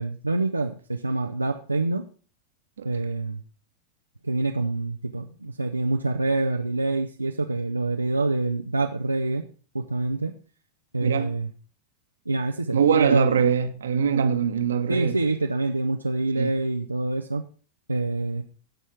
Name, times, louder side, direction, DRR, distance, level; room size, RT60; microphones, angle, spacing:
voice 1, 0.0-2.0 2.8-3.4 4.2-9.4 9.7-10.3 10.9-11.5 12.3-13.3 14.9-17.4 17.9-18.4, right 2 dB, 85° right, 0.6 m, -26 dB
voice 2, 11.0-11.3 12.7-15.2 16.4-16.5, right 7 dB, 65° right, 1.1 m, -22 dB
16.0 x 5.6 x 4.6 m
figure-of-eight pair, 90°, 0 cm